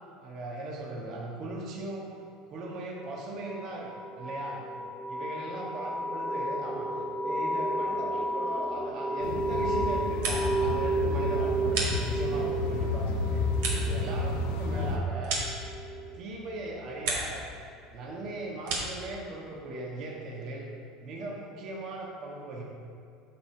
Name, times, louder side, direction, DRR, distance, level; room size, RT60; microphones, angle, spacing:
voice 1, 0.2-2.1 2.5-4.6 5.1-13.4 13.8-15.4 16.1-17.4 17.9-20.7 21.0-22.6, right 2 dB, 55° right, -1 dB, 1.5 m, -39 dB
sound 1, 3.0-17.5, right 2 dB, ahead, 0.6 m, -33 dB
sound 2, 9.2-15.0, left 3 dB, 85° left, 0.9 m, -31 dB
sound 3, 9.9-10.7 11.0-12.5 12.9-16.2 16.5-17.5 17.8-19.1, right 3 dB, 80° right, 2.0 m, -35 dB
7.6 x 7.2 x 4.6 m, 2.5 s
supercardioid pair, 95°, 0 cm